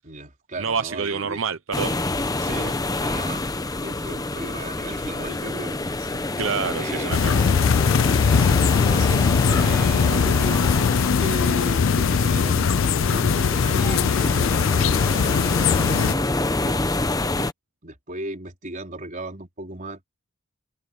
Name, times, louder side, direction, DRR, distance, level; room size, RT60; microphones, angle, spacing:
voice 1, 0.0-1.4 2.4-3.4 3.8-6.2 6.8-7.1 8.0-8.1 8.4-16.8 17.4-17.5 17.8-20.0, right 1 dB, 40° right, 4.5 m, -36 dB
voice 2, 0.6-2.0 2.4-2.7 6.4-7.4, right 5 dB, 75° right, 0.8 m, -28 dB
sound 1, 1.7-17.5, left 2 dB, 20° left, 0.9 m, -27 dB
sound 2, 7.1-16.1, left 6 dB, 75° left, 0.4 m, -20 dB
head